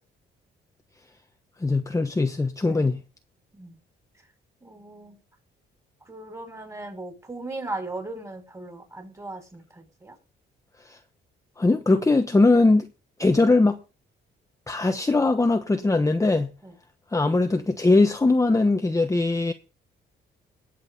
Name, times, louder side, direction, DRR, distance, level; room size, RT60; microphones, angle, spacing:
voice 1, 1.6-3.0 10.9-11.0 11.6-12.9 13.2-13.8 14.7-16.5 17.1-19.5, left 3 dB, 15° left, 1.1 m, -20 dB
voice 2, 4.6-5.2 6.1-10.2 16.6-16.7, right 2 dB, 15° right, 5.5 m, -37 dB
19.5 x 7.8 x 3.9 m
cardioid pair, 90°, 20 cm